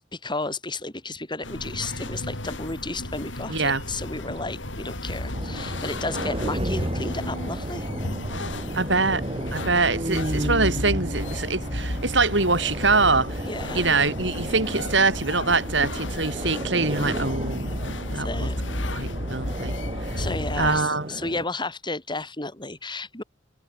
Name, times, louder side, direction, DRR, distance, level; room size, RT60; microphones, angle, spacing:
voice 1, 0.1-7.9 13.4-13.8 18.1-18.5 20.2-23.2, left 3 dB, 25° left, 6.2 m, -33 dB
sound 1, 1.4-20.8, left 1 dB, 80° left, 6.6 m, -33 dB
voice 2, 3.5-3.8 8.7-9.2 9.5-13.4 13.7-18.5 18.9-19.7 20.1-20.2 20.6-21.1, right 3 dB, 70° right, 7.5 m, -24 dB
sound 2, 5.3-21.5, right 1 dB, 30° right, 3.3 m, -33 dB
head